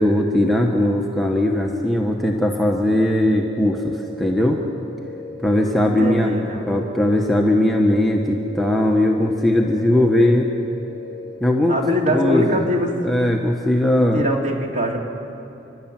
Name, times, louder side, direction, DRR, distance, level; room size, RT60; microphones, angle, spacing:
voice 1, 0.0-4.6 5.4-6.3 6.7-10.5 11.4-11.8 12.1-12.6 13.0-14.2, left 1 dB, ahead, -1 dB, 1.2 m, -19 dB
sound 1, 3.1-11.4, left 1 dB, 20° left, 3.7 m, -37 dB
voice 2, 5.8-6.8 11.7-13.0 14.1-15.0, left 1 dB, 40° right, 0 dB, 2.9 m, -22 dB
29.5 x 12.0 x 8.9 m, 3.0 s
head